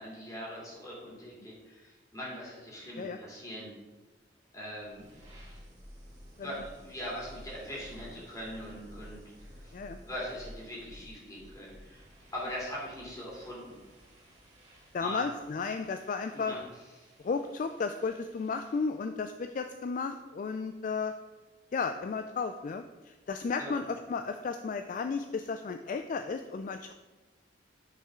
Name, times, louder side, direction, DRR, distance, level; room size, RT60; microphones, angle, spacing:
voice 1, 0.0-3.7 4.5-5.1 6.4-9.7 10.0-12.0 12.3-13.8 15.0-15.3 16.3-16.6 17.0-17.1 23.6-23.7, equal, 20° left, -5 dB, 2.7 m, -41 dB
sound 1, 4.4-19.0, equal, 40° right, 2.5 m, -53 dB
voice 2, 14.9-16.6 17.2-21.1 21.7-26.9, left 5 dB, 45° left, 8 dB, 0.3 m, -34 dB
9.5 x 5.5 x 3.7 m, 1.2 s
head